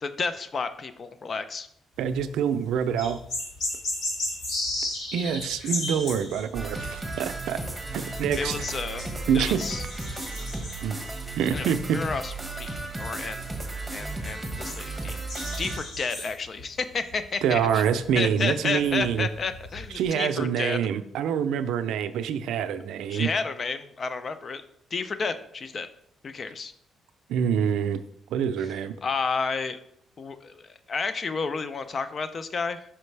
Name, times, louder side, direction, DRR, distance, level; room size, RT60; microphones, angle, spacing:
voice 1, 0.0-1.7 8.4-9.0 9.3-9.8 11.5-13.5 13.9-15.2 15.6-20.8 23.1-24.6 24.9-25.9 26.2-26.7 29.0-29.8 30.2-32.8, left 4 dB, 45° left, 0.5 m, -31 dB
sound 1, 2.0-2.4 2.7-20.0, left 1 dB, 75° left, 2.4 m, -36 dB
voice 2, 2.0-3.2 5.1-7.6 7.9-8.7 9.3-9.7 10.8-11.0 11.4-12.0 17.4-19.3 19.9-23.3 27.3-28.0 28.3-28.9, right 8 dB, 85° right, 0.4 m, -26 dB
sound 2, 6.5-15.8, right 2 dB, 10° right, 1.3 m, -34 dB
5.7 x 5.2 x 3.3 m
cardioid pair, 90°, 0 cm